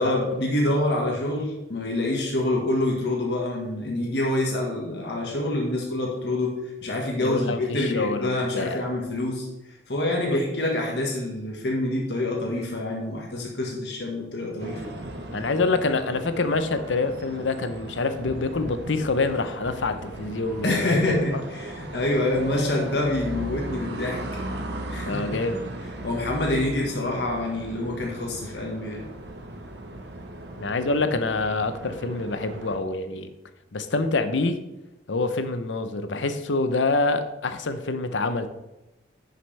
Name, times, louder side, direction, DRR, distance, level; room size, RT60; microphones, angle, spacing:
voice 1, 0.0-6.5 6.8-9.5 9.9-14.9 20.6-24.2 24.9-25.4 26.0-29.0, left 1 dB, 65° left, -1 dB, 1.6 m, -26 dB
voice 2, 7.2-8.8 10.3-10.4 15.3-21.3 25.1-25.6 30.6-33.3 33.7-34.6 35.1-38.5, left 3 dB, 85° left, 10 dB, 0.8 m, -26 dB
sound 1, 14.6-32.8, right 1 dB, 65° right, 1.1 m, -37 dB
11.0 x 6.4 x 3.4 m, 0.98 s
head